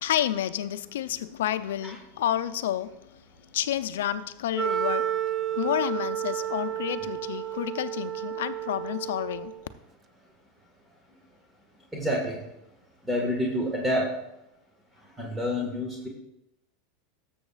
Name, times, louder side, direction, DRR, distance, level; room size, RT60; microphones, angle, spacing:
voice 1, 0.0-5.1 5.5-9.5, left 11 dB, 80° left, 0.5 m, -30 dB
Wind instrument woodwind instrument, 4.5-9.6, right 10 dB, 35° right, 0.4 m, -31 dB
voice 2, 11.9-12.4 13.1-14.1 15.2-16.1, left 1 dB, 10° right, 1.7 m, -28 dB
13.5 x 7.0 x 2.4 m
hypercardioid pair, 105°, 0 cm